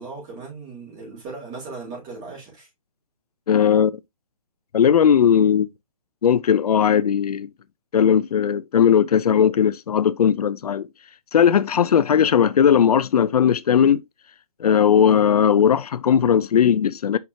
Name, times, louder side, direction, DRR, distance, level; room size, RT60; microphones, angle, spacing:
voice 1, 0.0-2.7 14.9-15.2, right 4 dB, 20° right, 3.8 m, -37 dB
voice 2, 3.5-4.0 4.7-5.7 6.2-7.5 7.9-10.9 11.3-14.0 14.6-17.2, left 8 dB, 80° left, 0.5 m, -18 dB
5.9 x 5.8 x 2.8 m
hypercardioid pair, 160°, 19 cm